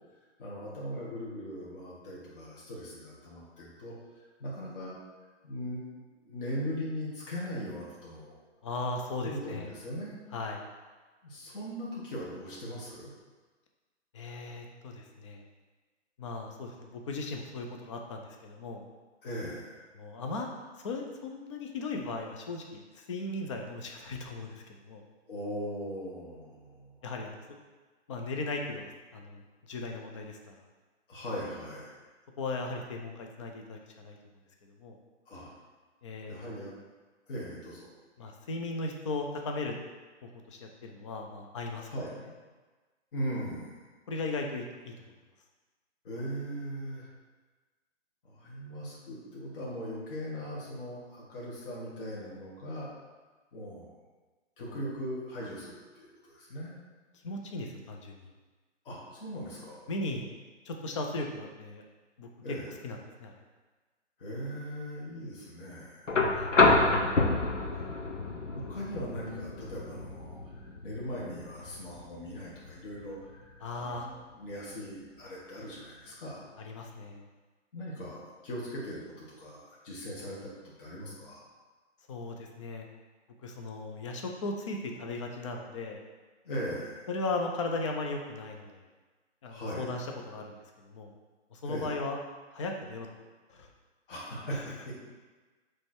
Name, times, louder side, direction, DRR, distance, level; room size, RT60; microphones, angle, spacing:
voice 1, 0.4-5.0 5.4-5.8 6.2-8.4 9.2-10.2 11.2-13.1 19.2-19.8 25.3-27.0 31.1-31.9 35.3-35.5 36.3-36.7 37.3-37.9 41.9-42.1 43.1-43.9 46.0-47.1 48.2-52.9 53.5-53.9 54.6-56.8 58.8-59.8 62.4-62.7 64.2-66.1 67.4-67.9 68.5-76.4 77.7-81.4 86.4-87.1 89.5-89.9 91.6-92.0 94.1-94.9, equal, 45° left, -6 dB, 2.1 m, -39 dB
voice 2, 8.6-9.7 10.3-10.6 14.1-15.4 16.2-18.8 20.0-20.5 20.8-25.0 27.0-27.4 28.1-30.6 32.4-34.2 34.8-35.0 36.0-36.6 38.2-39.8 40.2-41.9 44.1-44.9 54.6-54.8 57.2-58.2 59.9-60.3 60.7-61.8 62.2-62.3 62.8-63.3 66.3-66.5 73.6-74.1 76.7-77.2 82.1-82.9 83.4-86.0 87.1-88.8 89.4-90.6 90.8-91.1 91.5-92.2 92.5-93.1 93.5-93.7 94.5-94.6, left 3 dB, 25° left, 2 dB, 0.6 m, -37 dB
sound 1, 66.1-74.1 75.5-75.6, left 3 dB, 90° left, 1.1 m, -29 dB
7.6 x 3.3 x 4.5 m, 1.3 s
hypercardioid pair, 145°, 36 cm